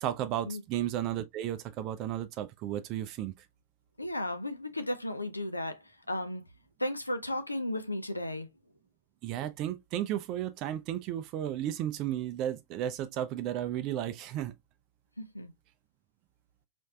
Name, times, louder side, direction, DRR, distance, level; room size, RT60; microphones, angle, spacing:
voice 1, 0.0-3.5 9.2-14.5, right 11 dB, 40° right, 0.4 m, -34 dB
voice 2, 4.0-5.8 6.1-6.4 6.8-8.5 15.2-15.5, left 1 dB, 85° left, 0.5 m, -34 dB
4.1 x 3.2 x 2.3 m
figure-of-eight pair, 90°, 0 cm